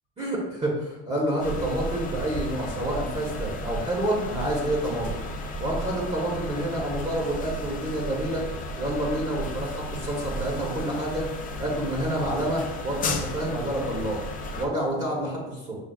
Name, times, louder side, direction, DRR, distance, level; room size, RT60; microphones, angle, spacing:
voice 1, 0.2-5.1 5.6-8.4 8.8-11.3 11.6-14.2 14.6-15.8, right 1 dB, 20° right, -3 dB, 1.1 m, -28 dB
sound 1, 1.4-14.7, left 1 dB, 30° left, 0.5 m, -34 dB
6.7 x 2.3 x 2.4 m, 1.1 s
supercardioid pair, 100°, 29 cm